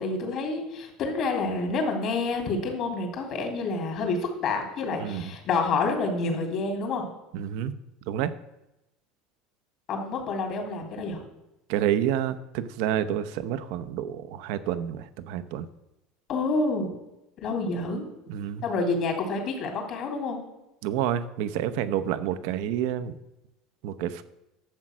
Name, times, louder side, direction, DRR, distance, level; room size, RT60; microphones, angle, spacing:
voice 1, 0.0-7.1 9.9-11.2 16.3-16.9 17.4-18.1 18.6-20.4, left 3 dB, 45° left, 2 dB, 3.2 m, -28 dB
voice 2, 5.0-5.3 7.3-7.7 8.1-8.3 11.7-15.7 18.3-18.6 20.8-23.1 23.8-24.2, right 10 dB, 70° right, 12 dB, 0.8 m, -29 dB
12.0 x 7.5 x 6.2 m, 0.93 s
cardioid pair, 145°, 0 cm